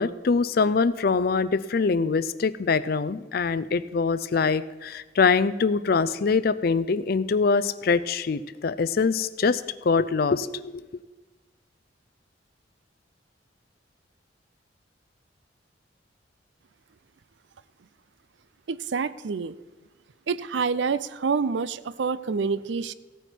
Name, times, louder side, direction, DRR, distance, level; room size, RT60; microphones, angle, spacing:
voice 1, 0.0-10.9, left 4 dB, 55° left, 16 dB, 0.4 m, -24 dB
voice 2, 18.7-19.6 20.3-22.9, right 5 dB, 70° right, 16 dB, 0.5 m, -27 dB
16.0 x 9.1 x 4.5 m, 1.2 s
head